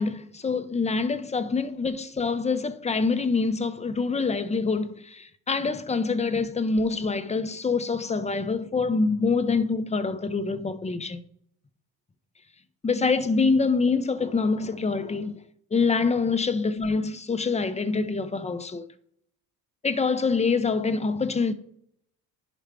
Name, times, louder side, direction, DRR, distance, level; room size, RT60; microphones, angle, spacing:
voice 1, 0.0-11.2 12.8-15.3 15.7-18.9 19.8-21.5, left 4 dB, 20° left, 0.6 m, -25 dB
10.5 x 5.0 x 3.4 m
cardioid pair, 100°, 37 cm